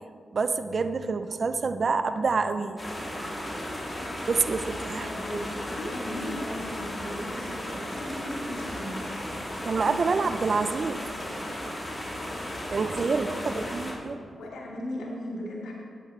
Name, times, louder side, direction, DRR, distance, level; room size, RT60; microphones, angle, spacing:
voice 1, 0.3-2.8 3.1-3.6 4.3-5.1 9.6-11.0 12.7-13.3 13.5-14.2, right 4 dB, 60° right, 10 dB, 0.6 m, -27 dB
sound 1, 2.8-13.9, left 1 dB, 20° left, 3.2 m, -35 dB
voice 2, 5.0-9.0 13.1-13.8 14.4-15.7, equal, 80° left, -4 dB, 3.0 m, -37 dB
13.5 x 9.9 x 3.4 m, 2.2 s
supercardioid pair, 40°, 0 cm